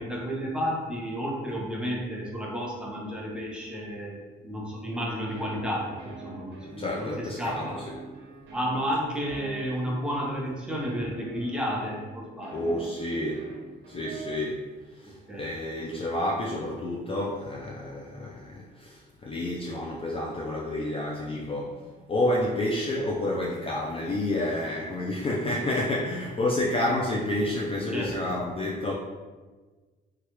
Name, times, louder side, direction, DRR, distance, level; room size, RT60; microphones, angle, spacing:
voice 1, 0.0-7.8 8.5-12.7 15.3-15.5 26.4-26.5 27.9-28.3, equal, 5° right, -4 dB, 0.8 m, -32 dB
sound 1, 4.9-14.3, right 4 dB, 70° right, 0.8 m, -44 dB
voice 2, 6.8-7.9 12.5-13.5 13.9-14.6 14.9-28.9, left 1 dB, 30° left, -2 dB, 0.4 m, -29 dB
3.1 x 2.3 x 3.0 m, 1.3 s
cardioid pair, 90°, 20 cm